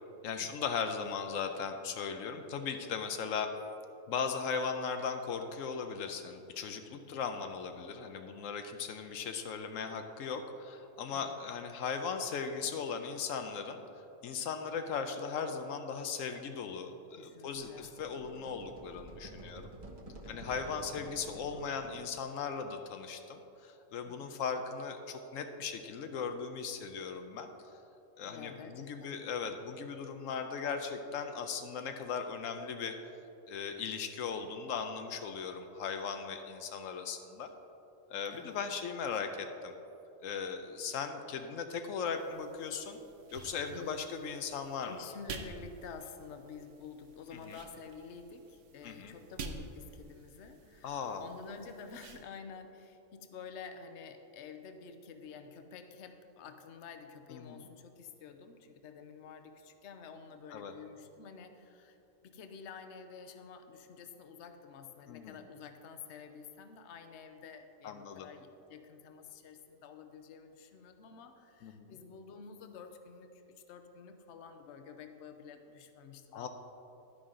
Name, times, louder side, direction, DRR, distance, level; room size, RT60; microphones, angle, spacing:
voice 1, 0.2-3.5 4.1-13.8 14.2-19.7 20.3-27.5 28.2-33.0 33.5-37.5 38.1-39.7 40.2-43.0 43.3-45.1 47.5-47.6 48.8-49.1 50.8-51.2 57.3-57.7 60.5-60.7 65.1-65.4 67.8-68.3 71.6-72.0 76.3-76.5, left 6 dB, 85° left, 6 dB, 1.0 m, -38 dB
voice 2, 17.2-17.9 20.2-20.5 24.1-24.4 28.2-29.3 38.3-38.6 43.7-44.0 44.8-62.0 62.2-76.5, left 5 dB, 65° left, 7 dB, 1.0 m, -50 dB
sound 1, 17.5-22.4, right 2 dB, 30° right, 0.9 m, -51 dB
sound 2, 42.2-52.2, right 4 dB, 70° right, 1.1 m, -50 dB
11.0 x 10.0 x 3.8 m, 3.0 s
omnidirectional pair, 1.3 m